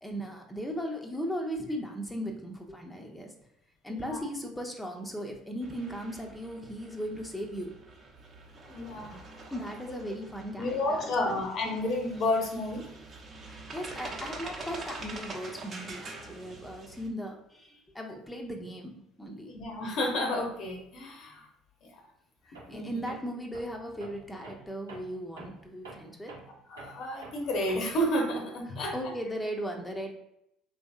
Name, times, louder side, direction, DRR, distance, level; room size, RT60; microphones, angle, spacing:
voice 1, 0.0-3.3 3.8-7.7 9.5-11.4 13.5-18.9 19.2-19.5 22.5-26.3 28.9-30.1, equal, 5° left, 1 dB, 0.6 m, -37 dB
voice 2, 3.9-4.2 8.7-9.2 10.6-12.9 19.5-21.5 21.8-22.0 22.7-23.1 26.7-29.1, left 1 dB, 55° left, 2 dB, 0.7 m, -31 dB
sound 1, 5.6-17.1, right 2 dB, 40° right, 0.7 m, -45 dB
Tools, 22.6-22.8 23.1-28.1, right 3 dB, 85° right, 0.7 m, -48 dB
3.1 x 2.7 x 2.4 m, 0.79 s
hypercardioid pair, 60°, 0 cm